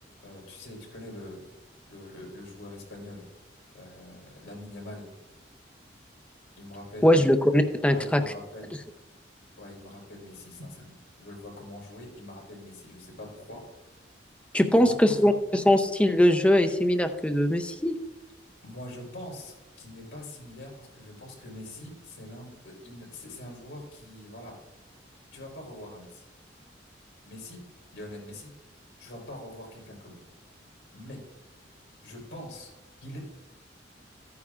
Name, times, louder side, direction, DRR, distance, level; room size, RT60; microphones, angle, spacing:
voice 1, 0.2-1.4 1.9-3.2 3.7-5.0 6.6-7.3 7.9-8.7 9.6-13.6 14.7-15.3 18.6-24.6 25.3-26.2 27.2-27.6 27.9-28.5 29.0-30.2 30.9-31.2 32.0-32.7 33.0-33.2, left 1 dB, 85° left, -1 dB, 4.0 m, -43 dB
voice 2, 7.0-8.2 14.5-18.0, left 1 dB, 5° left, 7 dB, 0.6 m, -21 dB
14.5 x 9.4 x 2.4 m, 1.0 s
head